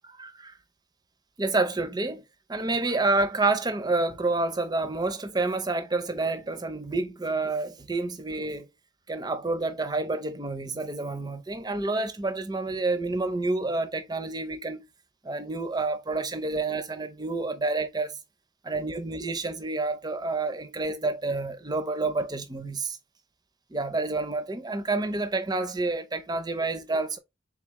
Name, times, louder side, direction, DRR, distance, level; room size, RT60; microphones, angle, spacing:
voice 1, 0.2-0.5 1.4-2.2 2.5-8.7 9.1-14.8 15.2-18.1 18.6-23.0 23.7-27.2, right 3 dB, 20° right, 0.6 m, -29 dB
3.8 x 3.6 x 3.0 m
head